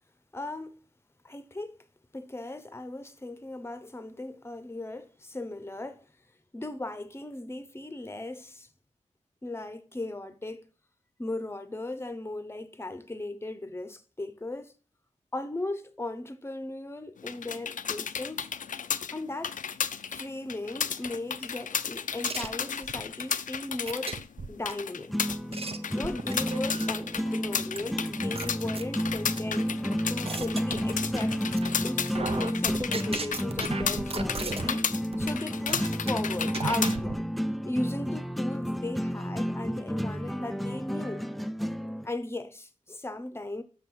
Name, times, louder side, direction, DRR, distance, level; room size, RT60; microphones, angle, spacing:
voice 1, 0.3-0.8 1.2-1.8 2.1-6.0 6.5-8.7 9.4-10.7 11.2-14.7 15.3-18.5 19.1-19.6 20.1-24.1 24.5-25.1 25.9-29.8 30.1-31.4 31.8-34.9 35.2-37.3 37.7-41.3 42.0-43.6, left 2 dB, 20° left, 0.8 m, -37 dB
sound 1, 17.2-37.0, left 7 dB, 80° left, 0.5 m, -34 dB
sound 2, 22.2-23.0 23.9-24.7 25.3-27.1 27.8-27.9 28.4-29.4 29.9-31.3 31.6-31.9 32.1-34.8 35.1-35.3 35.7-36.1 36.5-37.2, right 4 dB, 50° right, 0.7 m, -36 dB
sound 3, 25.1-42.1, equal, ahead, 0.5 m, -31 dB
6.7 x 5.5 x 6.2 m
wide cardioid pair, 95°, 13 cm